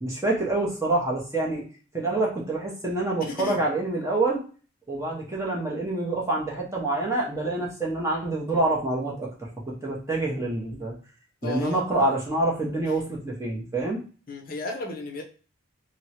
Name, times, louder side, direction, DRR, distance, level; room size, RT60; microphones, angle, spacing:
voice 1, 0.0-1.6 1.9-4.4 4.9-9.5 9.8-10.9 11.4-14.0, right 2 dB, 15° right, -3 dB, 0.7 m, -26 dB
voice 2, 3.2-3.6 11.4-11.8 14.3-15.2, left 3 dB, 40° left, 1 dB, 0.6 m, -34 dB
3.4 x 2.1 x 2.8 m, 0.38 s
head